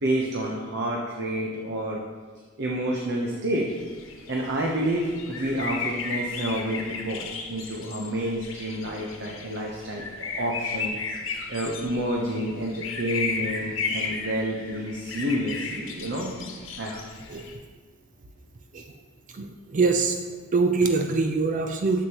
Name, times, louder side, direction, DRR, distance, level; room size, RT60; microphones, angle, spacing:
voice 1, 0.0-2.0 2.6-3.7 4.3-11.0 11.3-16.4 16.8-17.0, right 1 dB, 60° right, -1 dB, 0.8 m, -29 dB
sound 1, 3.7-17.5, left 4 dB, 70° left, 1.1 m, -35 dB
voice 2, 19.3-20.2 20.5-22.1, right 4 dB, 40° right, 5 dB, 0.4 m, -24 dB
9.8 x 7.3 x 3.0 m, 1.5 s
head